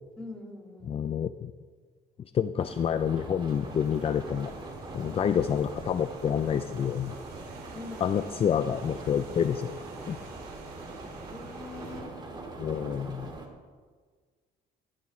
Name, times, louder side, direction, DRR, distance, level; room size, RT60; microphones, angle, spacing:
voice 1, 0.2-1.0 7.7-8.5 11.3-12.4, left 3 dB, 5° left, -1 dB, 2.3 m, -44 dB
voice 2, 0.9-1.5 2.3-4.5 4.9-7.2 8.0-9.7 10.1-10.2 12.6-13.3, left 8 dB, 35° left, 11 dB, 0.4 m, -28 dB
sound 1, 2.6-13.5, right 2 dB, 25° right, 2.0 m, -42 dB
Rain, 3.4-12.0, right 4 dB, 70° right, 2.6 m, -49 dB
14.0 x 13.5 x 3.2 m, 1.5 s
cardioid pair, 110°, 17 cm